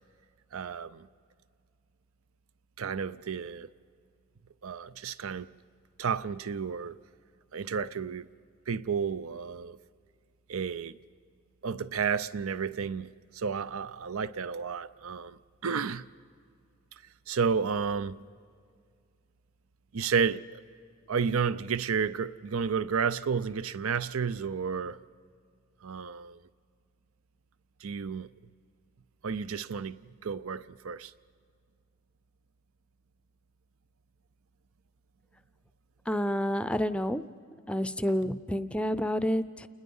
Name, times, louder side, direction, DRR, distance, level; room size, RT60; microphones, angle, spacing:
voice 1, 0.5-1.1 2.8-3.7 4.6-5.5 6.0-7.0 7.5-8.3 8.7-9.8 10.5-11.0 11.6-15.4 15.6-16.0 17.3-18.2 19.9-20.6 21.1-25.0 25.8-26.4 27.8-28.3 29.2-31.1, right 6 dB, 70° right, 0.6 m, -31 dB
voice 2, 36.1-37.2 37.7-39.7, equal, 5° left, 0.5 m, -29 dB
29.0 x 20.0 x 5.5 m
head